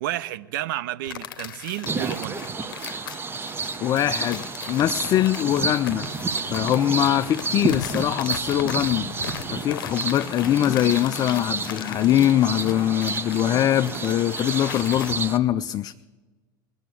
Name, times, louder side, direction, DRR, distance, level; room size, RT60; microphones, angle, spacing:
voice 1, 0.0-2.4, right 14 dB, 65° right, 0.6 m, -31 dB
sound 1, 1.0-15.1, left 9 dB, 75° left, 0.8 m, -38 dB
sound 2, 1.9-15.4, right 4 dB, 20° right, 0.7 m, -31 dB
voice 2, 3.8-6.1 6.5-15.9, left 12 dB, 35° left, 0.4 m, -22 dB
19.0 x 7.0 x 9.2 m
hypercardioid pair, 85°, 12 cm